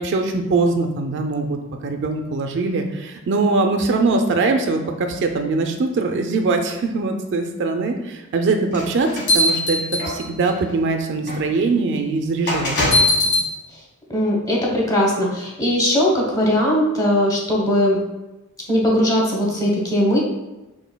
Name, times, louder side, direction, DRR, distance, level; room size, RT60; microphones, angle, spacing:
voice 1, 0.0-1.6 1.8-9.8 10.1-12.7 13.2-13.4, right 3 dB, 55° right, 5 dB, 0.4 m, -22 dB
sound 1, 8.7-10.5 11.3-11.4 12.5-13.5, left 1 dB, 55° left, 1.3 m, -19 dB
voice 2, 14.1-18.0 18.7-20.2, equal, 15° left, -3 dB, 1.0 m, -19 dB
6.0 x 3.0 x 2.2 m, 1.0 s
head